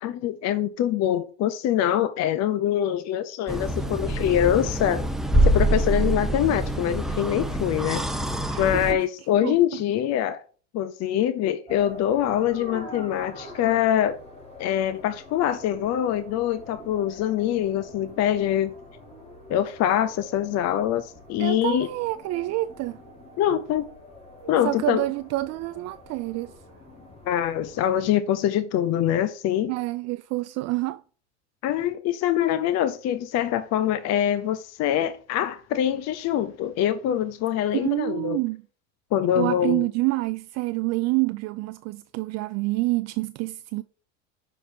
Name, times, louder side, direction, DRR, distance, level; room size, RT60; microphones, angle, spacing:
voice 1, 0.0-5.1 5.4-8.0 8.6-10.4 10.7-14.2 14.6-18.7 19.5-21.9 23.4-23.9 24.5-25.0 27.3-29.7 31.6-38.4 39.1-39.8, left 11 dB, 45° left, 0.6 m, -24 dB
sound 1, 3.5-8.9, right 1 dB, ahead, 0.7 m, -25 dB
voice 2, 8.5-9.0 9.4-9.8 21.4-23.0 24.6-26.5 29.7-31.0 37.7-38.6 39.4-43.8, right 20 dB, 50° right, 0.4 m, -27 dB
sound 2, 11.7-28.1, left 1 dB, 15° left, 3.1 m, -45 dB
6.0 x 4.6 x 5.0 m
hypercardioid pair, 90°, 35 cm